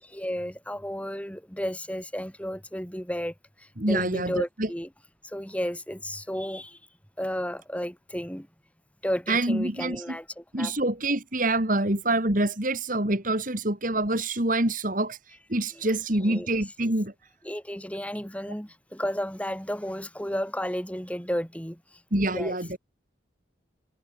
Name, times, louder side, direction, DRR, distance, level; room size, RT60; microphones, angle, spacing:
voice 1, 0.0-4.9 5.2-6.8 7.2-8.5 9.0-10.7 15.7-15.9 16.2-16.6 17.4-22.6, equal, 5° left, 5.4 m, -33 dB
voice 2, 3.8-4.7 9.3-10.0 10.5-15.2 15.5-17.1 22.1-22.8, right 2 dB, 40° right, 3.1 m, -26 dB
head